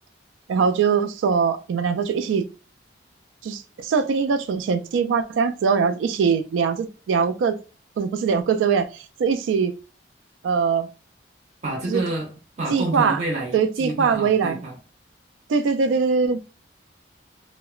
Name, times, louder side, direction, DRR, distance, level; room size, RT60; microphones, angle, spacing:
voice 1, 0.5-2.4 3.4-7.6 8.0-8.9 9.2-9.7 10.4-10.9 11.9-12.0 12.7-13.2 13.5-14.6 15.5-16.4, right 6 dB, 90° right, 0.3 m, -22 dB
voice 2, 11.6-12.3 12.6-14.8, right 2 dB, 35° right, 0.6 m, -28 dB
2.8 x 2.1 x 2.3 m
head